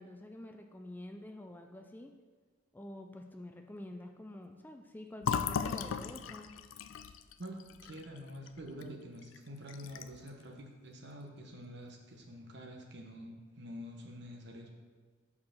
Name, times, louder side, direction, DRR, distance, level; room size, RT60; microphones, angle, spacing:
voice 1, 0.0-2.1 2.7-6.5, left 1 dB, 10° left, 4 dB, 0.3 m, -48 dB
Fill (with liquid), 5.2-8.9 9.2-9.4 9.7-10.3, left 7 dB, 90° left, 0.3 m, -37 dB
voice 2, 7.4-14.7, equal, 60° right, 2 dB, 1.1 m, -47 dB
5.5 x 4.7 x 6.4 m, 1.5 s
head